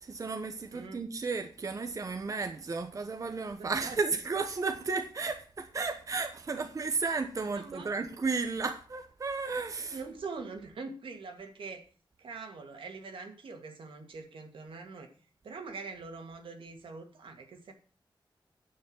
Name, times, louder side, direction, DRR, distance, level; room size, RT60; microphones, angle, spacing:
voice 1, 0.0-10.0, right 4 dB, 40° right, 1.0 m, -33 dB
voice 2, 0.7-1.0 3.6-4.0 7.5-8.0 9.8-11.8 12.2-15.1 15.4-17.7, right 4 dB, 85° right, 2.4 m, -43 dB
9.4 x 6.5 x 7.2 m
wide cardioid pair, 135°, 9 cm